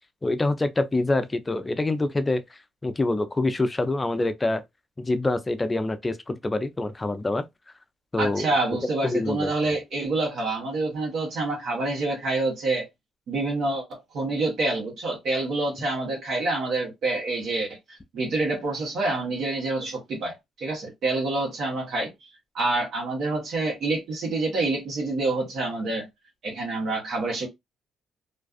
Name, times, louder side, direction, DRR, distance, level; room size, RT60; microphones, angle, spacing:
voice 1, 0.2-4.6 5.0-7.4 8.1-8.5 9.0-9.5, left 2 dB, 20° left, 0.4 m, -26 dB
voice 2, 8.2-12.9 13.3-22.3 22.5-26.1 26.4-27.5, right 2 dB, 70° right, 1.0 m, -27 dB
2.4 x 2.3 x 2.3 m
cardioid pair, 90°, 0 cm